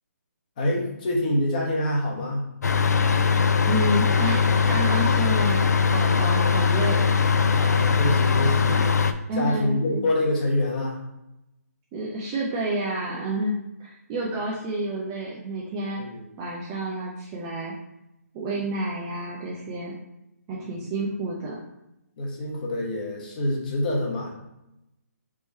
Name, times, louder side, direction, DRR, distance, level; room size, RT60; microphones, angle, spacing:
voice 1, 0.6-2.5 7.6-11.0 16.0-16.2 20.6-20.9 22.2-24.3, left 1 dB, 30° left, -1 dB, 1.0 m, -26 dB
sound 1, 2.6-9.1, left 5 dB, 85° left, 0.4 m, -21 dB
voice 2, 3.6-5.6 5.9-7.1 9.3-10.0 11.9-16.0 16.4-17.7 18.3-19.9 20.5-21.6, right 1 dB, 10° right, -4 dB, 0.3 m, -29 dB
3.6 x 3.1 x 4.0 m, 0.87 s
hypercardioid pair, 165°, 9 cm